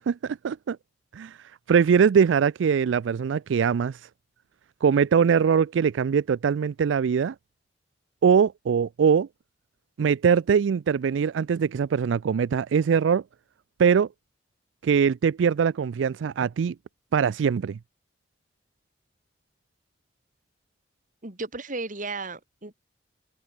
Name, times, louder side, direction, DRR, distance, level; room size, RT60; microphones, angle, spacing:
voice 1, 0.1-0.8 1.1-1.4 1.7-4.0 4.8-7.3 8.2-9.3 10.0-13.2 13.8-14.1 14.8-16.7 17.1-17.8, right 6 dB, 90° right, 0.4 m, -22 dB
voice 2, 21.2-22.7, right 3 dB, 45° right, 2.6 m, -34 dB
head